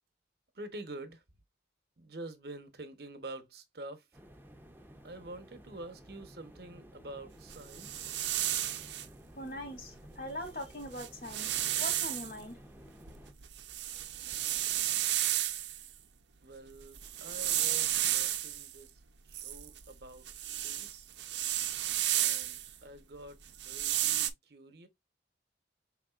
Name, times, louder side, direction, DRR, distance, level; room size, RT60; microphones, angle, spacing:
voice 1, 0.5-1.2 2.0-4.1 5.0-8.1 16.4-19.0 19.3-21.1 22.1-23.4 23.6-24.9, right 2 dB, 60° right, 1.0 m, -47 dB
sound 1, 4.1-13.3, equal, 10° right, 0.7 m, -54 dB
sound 2, 7.5-9.1 10.4-10.5 10.9-12.3 12.9-15.9 16.8-18.7 19.3-22.7 23.5-24.3, right 12 dB, 80° right, 0.6 m, -32 dB
voice 2, 9.3-12.6, left 1 dB, 50° left, 1.8 m, -42 dB
5.3 x 3.6 x 2.4 m
head